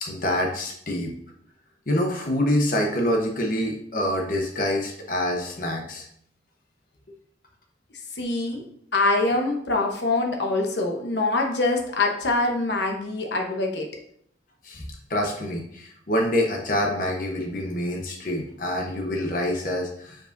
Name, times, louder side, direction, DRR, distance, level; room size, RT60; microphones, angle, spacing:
voice 1, 0.0-1.1 1.9-6.0 14.6-14.8 15.1-20.2, left 1 dB, 50° left, 0 dB, 0.9 m, -26 dB
voice 2, 8.2-8.6 8.9-13.9, left 2 dB, 75° left, 2 dB, 1.0 m, -24 dB
7.3 x 5.2 x 2.6 m, 0.67 s
head